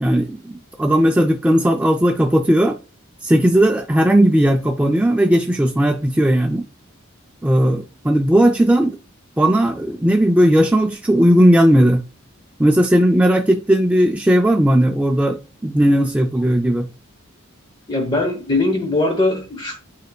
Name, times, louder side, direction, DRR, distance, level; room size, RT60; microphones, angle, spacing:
voice 1, 0.0-2.8 3.2-6.7 7.4-9.0 9.4-12.0 12.6-16.9, equal, 5° right, 0.3 m, -16 dB
voice 2, 17.9-19.7, left 2 dB, 20° left, 1.0 m, -20 dB
9.4 x 4.4 x 2.3 m
head